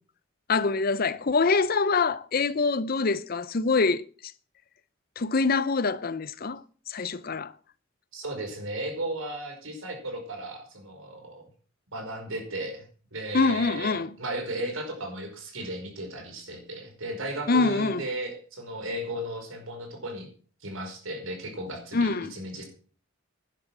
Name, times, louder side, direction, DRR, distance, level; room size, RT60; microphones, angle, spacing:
voice 1, 0.5-4.0 5.2-7.5 13.3-14.1 17.5-18.0 21.9-22.3, left 4 dB, 45° left, 0.6 m, -25 dB
voice 2, 8.1-11.4 11.9-12.9 13.1-20.3 20.6-22.6, right 1 dB, 90° right, 5.3 m, -35 dB
11.5 x 10.5 x 6.1 m
head